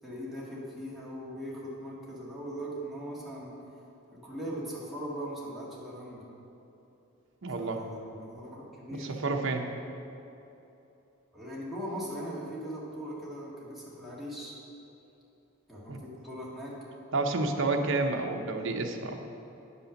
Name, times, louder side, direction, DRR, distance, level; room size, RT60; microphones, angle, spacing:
voice 1, 0.0-3.5 4.1-6.3 7.6-9.2 11.3-14.5 15.7-16.7, equal, ahead, -7 dB, 1.9 m, -40 dB
voice 2, 7.4-7.8 9.0-9.7 15.9-16.0 17.1-19.3, right 3 dB, 60° right, 3 dB, 0.8 m, -30 dB
9.3 x 5.6 x 6.4 m, 2.9 s
head